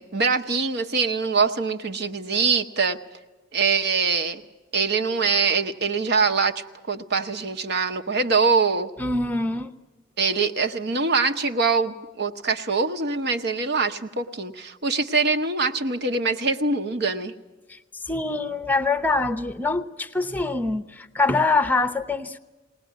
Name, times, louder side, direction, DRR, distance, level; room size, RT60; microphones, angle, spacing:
voice 1, 0.0-3.0 3.5-4.4 4.7-8.9 10.2-17.3, right 4 dB, 55° right, 6 dB, 1.0 m, -23 dB
voice 2, 9.0-9.7 17.7-22.4, left 3 dB, 10° left, 11 dB, 0.7 m, -24 dB
21.0 x 18.5 x 9.3 m, 1.2 s
head